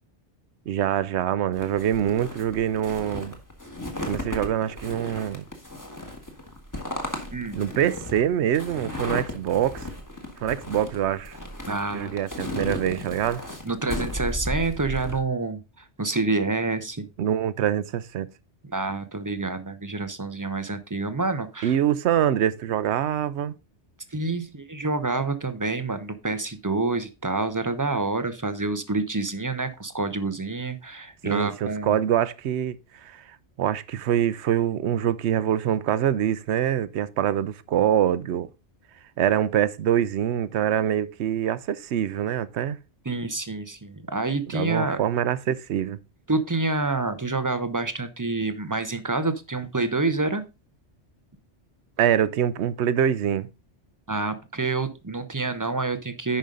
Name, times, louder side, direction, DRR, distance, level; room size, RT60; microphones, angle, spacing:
voice 1, 0.7-3.3 4.0-5.5 7.5-9.8 10.4-11.4 11.9-13.4 17.2-18.3 21.6-23.6 31.2-33.2 33.6-38.5 39.2-42.8 44.5-46.0 52.0-53.5, right 10 dB, 75° right, 0.9 m, -24 dB
sound 1, 1.6-15.2, left 1 dB, 15° left, 1.5 m, -35 dB
voice 2, 7.3-7.6 11.7-12.2 13.6-17.0 18.7-21.8 24.1-32.0 43.1-45.0 46.3-50.4 54.1-56.4, right 3 dB, 20° right, 0.6 m, -28 dB
10.5 x 5.3 x 3.8 m
omnidirectional pair, 1.2 m